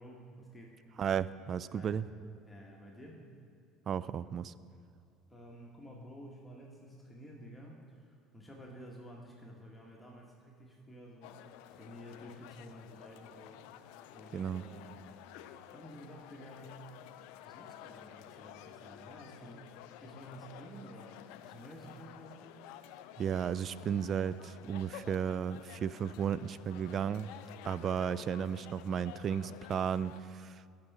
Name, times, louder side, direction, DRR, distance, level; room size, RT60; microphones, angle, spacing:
voice 1, 0.0-0.8 1.7-2.1 2.5-3.3 5.3-15.2 15.7-16.8 17.4-22.5, equal, 10° left, -2 dB, 1.7 m, -52 dB
voice 2, 1.0-2.0 3.9-4.5 14.3-14.6 23.2-27.3 27.6-30.7, right 8 dB, 45° right, 17 dB, 0.3 m, -34 dB
sound 1, 11.2-30.2, left 11 dB, 65° left, 0.4 m, -52 dB
17.5 x 5.9 x 3.7 m, 2.3 s
figure-of-eight pair, 60°, 0 cm